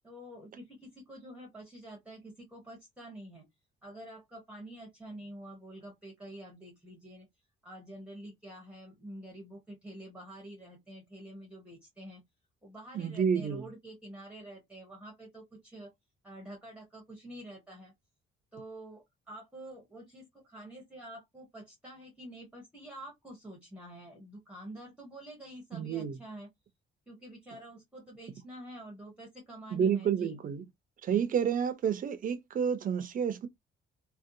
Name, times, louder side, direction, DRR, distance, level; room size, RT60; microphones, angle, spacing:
voice 1, 0.0-3.5 3.8-7.3 7.6-12.2 12.6-15.9 16.2-17.9 18.5-26.5 27.1-30.4, right 1 dB, 5° right, 0.8 m, -47 dB
voice 2, 12.9-13.6 25.7-26.2 29.7-30.6 31.0-33.5, right 7 dB, 40° right, 0.5 m, -29 dB
2.6 x 2.1 x 2.6 m
cardioid pair, 160°, 21 cm